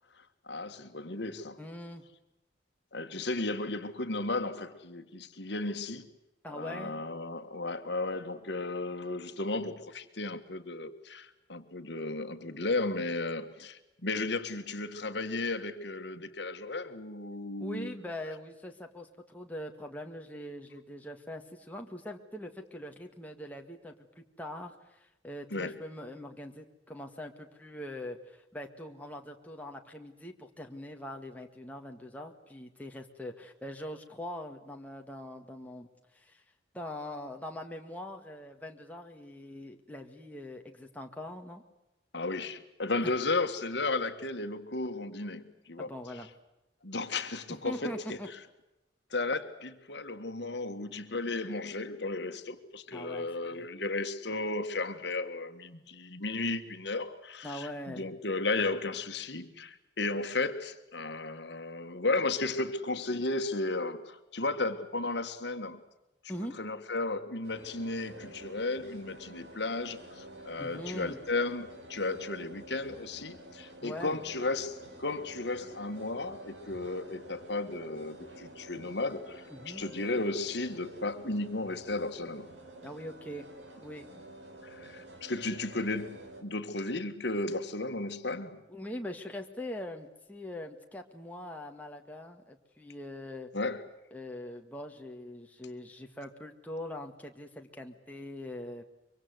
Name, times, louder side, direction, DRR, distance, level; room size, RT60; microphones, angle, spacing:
voice 1, 0.2-1.6 2.9-6.1 6.5-17.9 25.5-25.7 42.1-46.3 46.8-48.2 49.1-65.8 66.2-82.5 84.6-88.6 93.5-93.8, left 2 dB, 65° left, 1.7 m, -34 dB
voice 2, 1.6-2.0 6.4-7.0 17.6-35.9 36.1-36.4 36.7-41.6 43.0-43.1 45.8-46.3 47.6-48.3 52.9-53.7 57.4-58.1 66.3-66.6 70.6-71.2 73.8-74.2 79.5-79.9 82.8-83.5 83.8-84.2 88.7-93.5 94.1-98.8, left 1 dB, 10° left, 1.9 m, -42 dB
sound 1, 67.4-86.4, right 1 dB, 75° right, 4.8 m, -49 dB
24.5 x 24.0 x 8.0 m
head